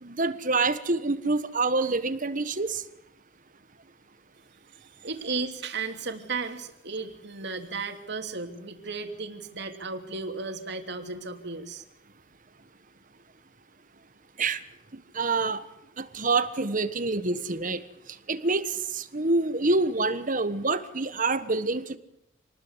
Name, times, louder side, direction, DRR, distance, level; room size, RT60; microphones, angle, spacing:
voice 1, 0.0-2.8 14.4-14.6 14.9-15.6 16.0-17.8 18.3-22.0, right 3 dB, 40° right, 12 dB, 1.4 m, -27 dB
voice 2, 5.0-11.8, right 4 dB, 55° right, 5 dB, 3.0 m, -34 dB
27.5 x 20.0 x 8.2 m, 0.82 s
head